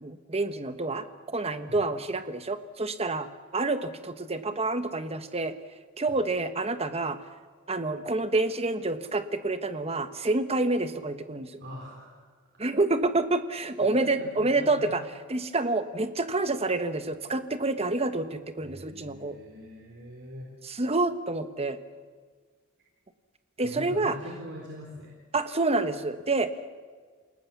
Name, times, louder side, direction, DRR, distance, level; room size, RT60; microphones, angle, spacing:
voice 1, 0.0-3.3 3.5-5.5 6.0-7.2 7.7-11.6 12.6-15.0 15.3-19.3 20.6-21.8 23.6-24.1 25.3-26.5, right 2 dB, 30° right, 10 dB, 1.2 m, -28 dB
voice 2, 11.6-12.2 13.8-15.0 18.6-20.5 23.6-25.1, equal, 55° right, -1 dB, 4.0 m, -43 dB
28.5 x 18.5 x 7.2 m, 1.5 s
head